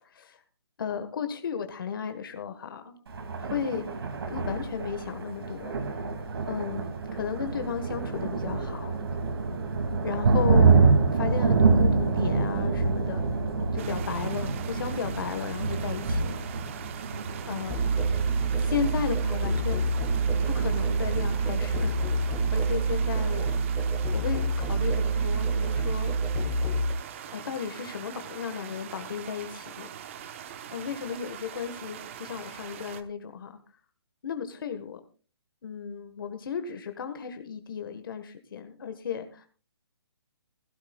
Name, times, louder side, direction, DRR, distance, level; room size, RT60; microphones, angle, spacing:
voice 1, 0.0-0.4 0.8-3.0 3.4-4.0 4.3-5.7 6.5-9.0 10.0-10.8 11.1-13.2 13.7-16.4 17.5-17.9 18.6-19.9 20.5-26.1 27.3-29.9 30.7-33.6 34.2-35.0 35.6-39.5, left 7 dB, 55° left, 7 dB, 1.5 m, -34 dB
Thunder, 3.1-22.8, right 4 dB, 65° right, 2.6 m, -27 dB
sound 1, 13.8-33.0, right 9 dB, 30° right, 1.0 m, -43 dB
Musical instrument, 17.7-26.9, right 3 dB, 10° left, 1.7 m, -27 dB
17.0 x 16.0 x 2.4 m, 0.36 s
hypercardioid pair, 165°, 14 cm